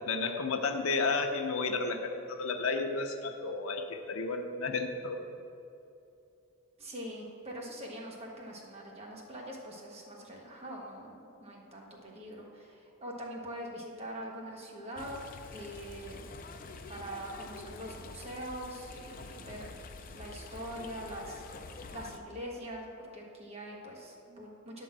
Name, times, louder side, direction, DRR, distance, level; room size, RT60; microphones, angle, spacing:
voice 1, 0.1-5.3, left 4 dB, 85° left, 5 dB, 0.7 m, -32 dB
voice 2, 6.8-15.2 15.5-16.3 16.9-19.7 20.1-24.8, equal, 30° right, -2 dB, 1.2 m, -43 dB
sound 1, 15.0-22.2, left 3 dB, 40° left, 0.5 m, -47 dB
10.0 x 3.9 x 7.4 m, 2.7 s
head